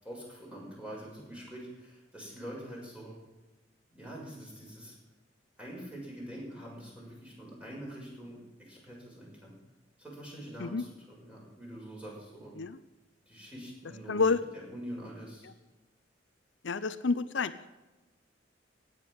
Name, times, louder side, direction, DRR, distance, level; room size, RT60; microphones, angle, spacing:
voice 1, 0.0-3.2 3.9-4.9 5.6-9.6 10.0-12.5 13.3-14.2 14.5-15.5, right 1 dB, 5° right, -4 dB, 6.4 m, -45 dB
voice 2, 14.1-14.4 16.6-17.5, left 4 dB, 75° left, 12 dB, 0.7 m, -28 dB
16.0 x 9.9 x 6.5 m, 1.1 s
head